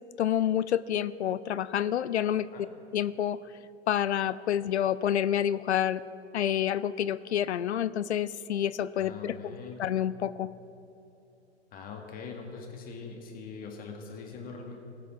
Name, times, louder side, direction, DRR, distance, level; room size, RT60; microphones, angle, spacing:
voice 1, 0.2-2.5 2.9-3.4 3.9-6.0 6.3-10.5, left 10 dB, 75° left, 17 dB, 0.5 m, -28 dB
voice 2, 8.9-9.8 11.7-14.8, left 5 dB, 25° left, 2 dB, 1.6 m, -42 dB
19.5 x 6.8 x 3.7 m, 2.9 s
figure-of-eight pair, 110°, 34 cm